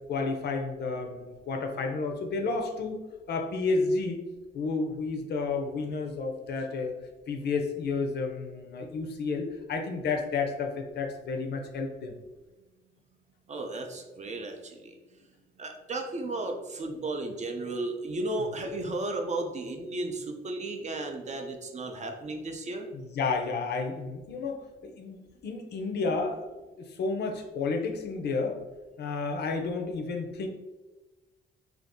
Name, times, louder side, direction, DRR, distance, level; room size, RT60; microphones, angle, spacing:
voice 1, 0.1-3.0 3.3-4.2 4.5-7.0 7.3-12.1 22.9-26.5 26.8-28.6 29.0-30.5, left 4 dB, 55° left, 4 dB, 0.5 m, -31 dB
voice 2, 13.5-15.0 15.6-22.9, right 2 dB, 35° right, 4 dB, 0.5 m, -34 dB
2.6 x 2.4 x 3.5 m, 1.2 s
cardioid pair, 90°, 20 cm